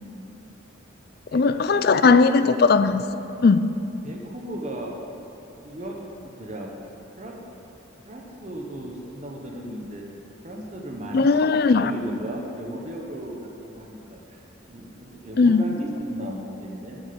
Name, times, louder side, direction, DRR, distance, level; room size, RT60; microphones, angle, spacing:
voice 1, 1.3-3.0 3.4-3.8 11.1-11.9 15.4-15.7, left 4 dB, 50° left, 0.4 m, -18 dB
voice 2, 4.0-4.9 5.6-6.0 6.2-6.7 7.2-7.4 8.0-10.0 10.4-14.4 14.7-17.0, right 1 dB, 35° right, 1.1 m, -36 dB
10.5 x 7.4 x 6.9 m
head